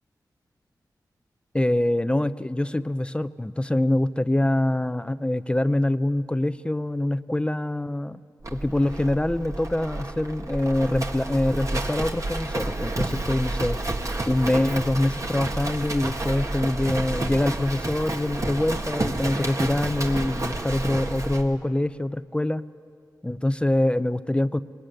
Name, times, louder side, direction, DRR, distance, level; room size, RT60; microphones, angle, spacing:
voice 1, 1.5-8.2 8.5-13.8 14.3-22.6 23.2-24.6, left 1 dB, 15° left, 13 dB, 0.6 m, -24 dB
Livestock farm animals working animals, 8.4-21.5, right 2 dB, 45° right, 1.9 m, -30 dB
21.0 x 19.5 x 9.2 m, 2.2 s
cardioid pair, 60°, 8 cm